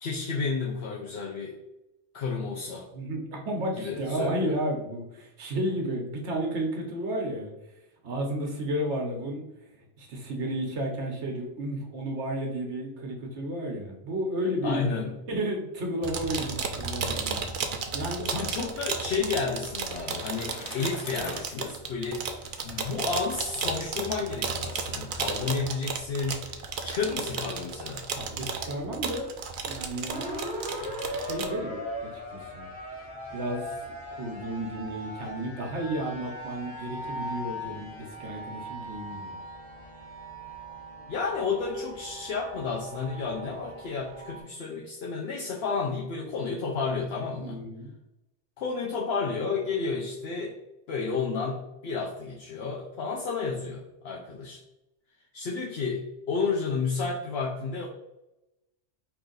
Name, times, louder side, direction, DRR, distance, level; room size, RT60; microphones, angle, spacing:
voice 1, 0.0-1.6 2.1-2.9 3.8-4.5 14.6-15.1 18.2-22.3 22.6-26.5 26.8-28.0 41.1-47.6 48.6-50.6 50.9-54.6 55.3-57.9, left 4 dB, 65° left, -2 dB, 0.9 m, -31 dB
voice 2, 2.9-7.5 8.0-9.4 10.0-14.8 15.3-17.5 17.9-18.7 28.1-29.3 29.6-30.3 31.1-32.7 33.0-39.4 47.4-47.9, right 1 dB, 75° right, 1 dB, 1.1 m, -32 dB
sound 1, 16.0-31.5, right 5 dB, 55° right, 0.6 m, -33 dB
Bicycle, 19.4-23.7, left 4 dB, 80° left, 1.0 m, -45 dB
sound 2, 30.1-44.4, equal, 30° right, 1.8 m, -39 dB
4.8 x 2.6 x 3.8 m, 0.91 s
omnidirectional pair, 1.2 m